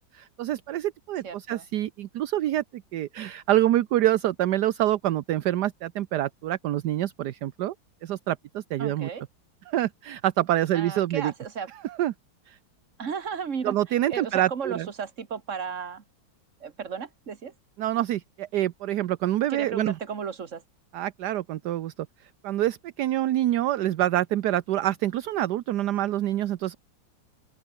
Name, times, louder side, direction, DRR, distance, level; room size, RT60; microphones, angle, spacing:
voice 1, 0.1-7.7 8.0-9.1 9.7-11.3 11.8-12.1 12.5-12.6 13.6-14.9 17.8-20.0 20.9-21.9 22.2-26.8, right 13 dB, 65° right, 1.1 m, -26 dB
voice 2, 1.2-1.7 8.8-9.2 10.7-11.7 13.0-16.0 16.6-17.5 19.5-20.6, right 6 dB, 40° right, 1.9 m, -34 dB
open air
omnidirectional pair, 2.3 m